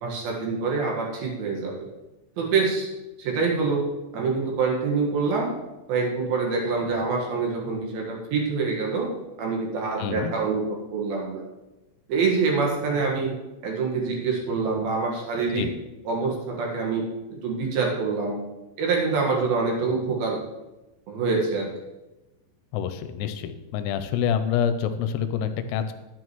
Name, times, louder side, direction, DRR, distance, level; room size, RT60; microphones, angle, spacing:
voice 1, 0.0-1.9 2.4-2.9 3.2-3.9 4.1-5.5 5.9-9.1 9.4-11.4 12.1-13.3 13.6-15.7 16.1-17.0 17.3-18.4 18.8-20.4 21.1-21.7, right 4 dB, 60° right, -1 dB, 2.7 m, -25 dB
voice 2, 10.0-10.3 15.6-15.7 22.7-25.9, left 8 dB, 85° left, 10 dB, 3.3 m, -27 dB
12.0 x 9.2 x 3.1 m, 1.0 s
omnidirectional pair, 5.9 m